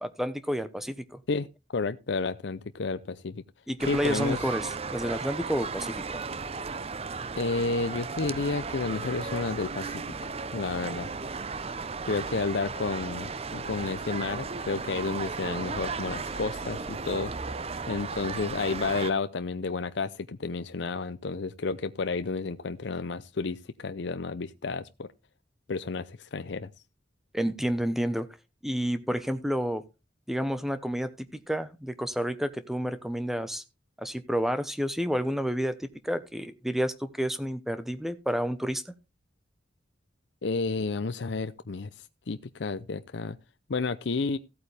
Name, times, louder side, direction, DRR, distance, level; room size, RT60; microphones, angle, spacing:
voice 1, 0.0-1.2 3.7-6.2 27.3-28.3 28.6-29.8 30.3-33.6 34.0-38.8, equal, ahead, 0.9 m, -30 dB
voice 2, 1.7-3.4 3.9-4.4 7.4-11.1 12.0-17.3 17.9-25.1 25.7-26.7 40.4-41.9 42.3-43.4 43.7-44.4, left 4 dB, 70° left, 0.6 m, -31 dB
sound 1, 3.8-19.1, right 4 dB, 35° right, 0.6 m, -35 dB
15.0 x 8.6 x 3.4 m
head